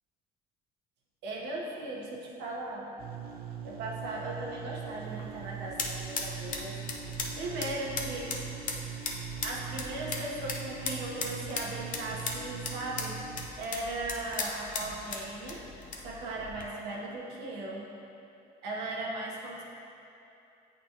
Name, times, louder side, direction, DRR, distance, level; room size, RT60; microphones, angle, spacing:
voice 1, 1.2-2.9 3.6-6.8 7.4-8.3 8.6-8.7 9.4-13.2 13.6-15.6 16.0-17.9 18.6-19.6, right 2 dB, 85° right, -3 dB, 1.1 m, -37 dB
sound 1, 3.0-13.5, right 9 dB, 65° right, 0.5 m, -42 dB
sound 2, 5.0-16.7, left 4 dB, 50° left, 0.7 m, -38 dB
8.6 x 4.1 x 2.9 m, 2.8 s
cardioid pair, 110°, 17 cm